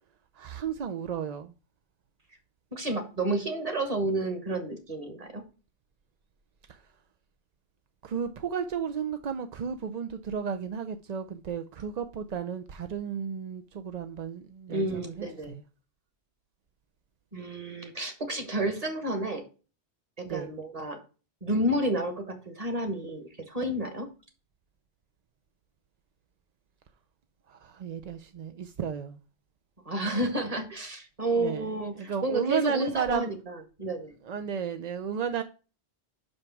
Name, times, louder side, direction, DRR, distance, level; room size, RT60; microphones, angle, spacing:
voice 1, 0.3-1.5 6.7-6.8 8.0-15.3 20.2-20.5 27.5-29.2 31.4-33.3 34.2-35.4, right 7 dB, 50° right, 0.5 m, -33 dB
voice 2, 2.7-5.4 14.7-15.5 17.3-19.4 20.2-21.0 21.4-24.1 29.8-34.1, right 1 dB, 35° right, 1.6 m, -31 dB
5.9 x 5.2 x 5.8 m
omnidirectional pair, 1.1 m